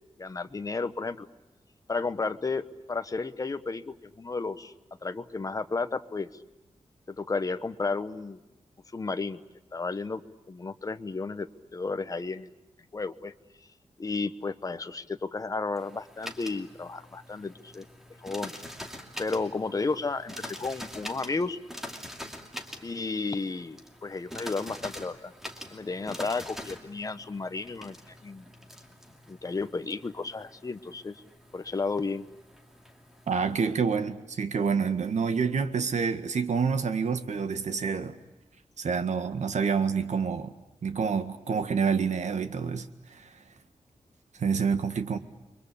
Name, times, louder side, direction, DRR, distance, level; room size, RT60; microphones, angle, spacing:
voice 1, 0.2-1.3 1.9-4.7 5.0-6.3 7.1-8.4 8.9-9.4 9.7-10.2 10.5-12.5 12.9-13.3 14.0-17.9 18.2-18.5 19.2-21.6 22.8-25.3 25.7-28.5 29.3-31.2 31.5-32.3, left 3 dB, 30° left, 1.1 m, -33 dB
sound 1, 15.8-33.6, equal, 5° right, 2.5 m, -45 dB
voice 2, 33.3-38.2 38.8-40.5 40.8-43.3 44.4-45.2, right 5 dB, 80° right, 1.8 m, -28 dB
30.0 x 23.5 x 8.5 m
wide cardioid pair, 175°, 12 cm